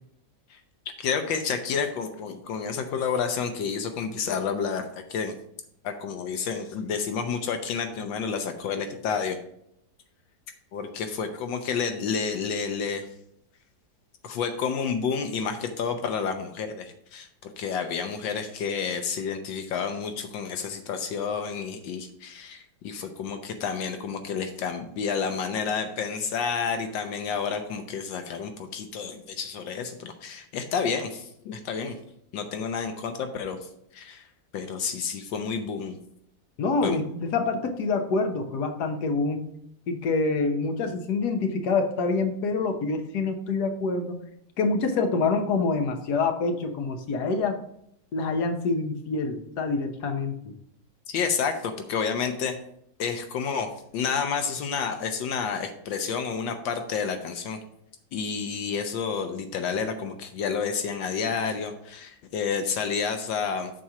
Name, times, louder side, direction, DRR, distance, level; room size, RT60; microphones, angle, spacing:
voice 1, 1.0-5.3 5.8-9.4 10.7-13.1 14.2-32.0 32.3-34.3 34.5-36.0 36.8-37.0 51.1-52.6 53.0-57.6 58.1-63.7, left 6 dB, 80° left, 7 dB, 1.5 m, -30 dB
voice 2, 36.6-39.5 39.9-44.2 44.6-47.6 48.1-50.6, left 4 dB, 65° left, 5 dB, 1.5 m, -26 dB
7.7 x 4.2 x 5.8 m, 0.73 s
omnidirectional pair, 2.0 m